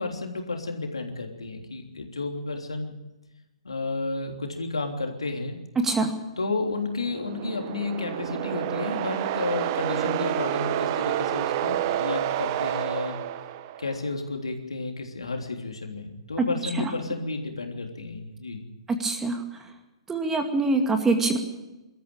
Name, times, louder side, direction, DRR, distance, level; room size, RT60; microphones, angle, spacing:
voice 1, 0.0-3.0 3.6-5.6 6.4-13.2 13.8-18.7, left 3 dB, 75° left, 3 dB, 3.4 m, -32 dB
voice 2, 5.8-6.1 16.4-16.5 18.9-19.4 20.1-21.4, right 3 dB, 10° right, 5 dB, 2.3 m, -24 dB
sound 1, 7.0-14.0, right 12 dB, 40° right, 1.0 m, -29 dB
22.5 x 14.0 x 8.9 m, 1.0 s
figure-of-eight pair, 120°, 3 cm